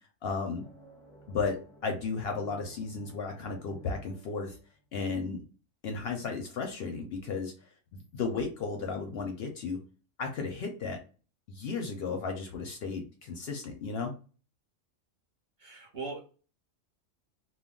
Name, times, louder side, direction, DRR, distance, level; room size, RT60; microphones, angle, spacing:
voice 1, 0.2-0.6 1.3-4.6 4.9-5.4 5.8-9.8 10.2-11.0 11.5-14.1, left 4 dB, 65° left, 4 dB, 0.7 m, -34 dB
sound 1, 0.5-4.9, right 2 dB, 15° right, 0.5 m, -55 dB
voice 2, 15.6-16.3, right 4 dB, 45° right, -1 dB, 0.8 m, -40 dB
2.2 x 2.2 x 3.6 m, 0.36 s
omnidirectional pair, 1.3 m